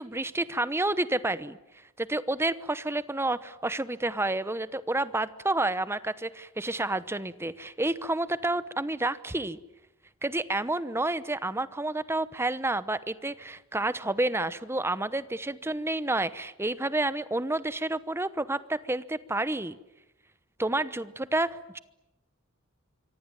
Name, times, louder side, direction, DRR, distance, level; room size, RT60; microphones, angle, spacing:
voice 1, 0.0-1.6 2.0-9.6 10.2-19.8 20.6-21.8, right 2 dB, 10° right, 15 dB, 0.9 m, -29 dB
26.0 x 24.5 x 9.0 m, 0.97 s
head